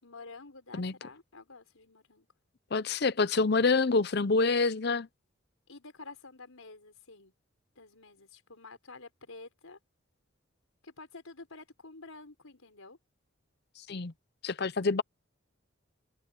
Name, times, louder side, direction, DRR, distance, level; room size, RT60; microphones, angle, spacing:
voice 1, 0.0-2.3 5.7-7.3 7.8-9.8 10.8-13.0, left 3 dB, 90° left, 5.4 m, -50 dB
voice 2, 2.7-5.1 13.9-14.1 14.4-15.0, left 3 dB, 50° left, 0.6 m, -26 dB
head